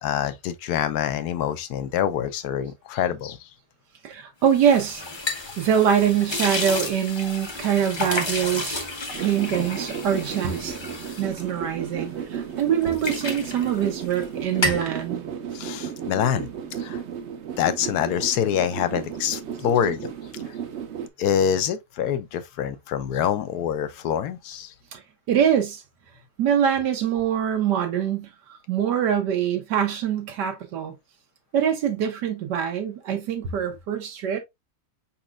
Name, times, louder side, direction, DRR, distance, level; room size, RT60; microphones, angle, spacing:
voice 1, 0.0-3.5 15.5-16.5 16.8-17.0 17.6-20.1 21.2-24.7, left 9 dB, 75° left, 1.1 m, -25 dB
voice 2, 4.0-5.0 5.6-8.8 9.2-10.8 11.2-15.2 24.9-25.0 25.3-25.8 26.4-31.0 31.5-34.4, right 8 dB, 90° right, 1.5 m, -24 dB
sound 1, 4.5-12.2 12.6-14.3 14.5-14.9, left 2 dB, 25° left, 0.6 m, -31 dB
sound 2, 9.1-21.1, right 8 dB, 55° right, 0.8 m, -34 dB
5.0 x 4.2 x 2.3 m
omnidirectional pair, 1.8 m